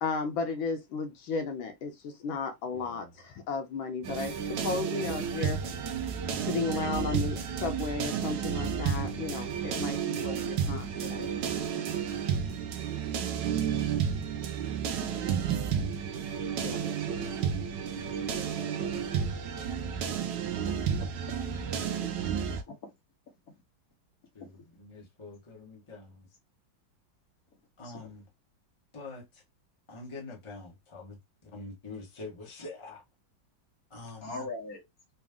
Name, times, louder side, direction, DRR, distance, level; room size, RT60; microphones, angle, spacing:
voice 1, 0.0-5.6 6.5-11.2, left 4 dB, 80° left, 1.5 m, -34 dB
voice 2, 2.7-3.1 8.9-9.3 10.3-12.3 15.4-15.6 16.6-17.5 18.0-18.1 18.3-19.3 24.3-26.3 27.8-28.2 28.9-29.4 29.9-33.0 33.9-34.5, left 3 dB, 20° left, 1.1 m, -46 dB
sound 1, 4.0-22.6, right 7 dB, 70° right, 1.3 m, -31 dB
voice 3, 20.7-21.4 22.0-22.1 22.4-22.7 34.2-34.8, left 3 dB, 50° left, 1.7 m, -41 dB
4.1 x 2.4 x 3.5 m
omnidirectional pair, 2.2 m